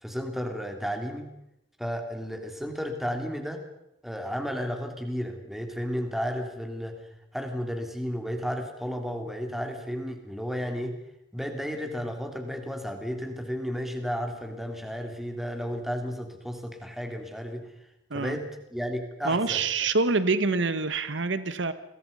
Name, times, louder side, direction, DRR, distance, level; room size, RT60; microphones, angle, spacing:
voice 1, 0.0-1.3 1.8-3.6 4.0-7.0 7.3-11.0 11.3-17.7 18.1-18.4 18.7-19.6, equal, ahead, 4 dB, 3.2 m, -33 dB
voice 2, 19.2-21.7, right 3 dB, 75° right, 12 dB, 1.2 m, -26 dB
29.5 x 22.5 x 5.5 m, 0.83 s
head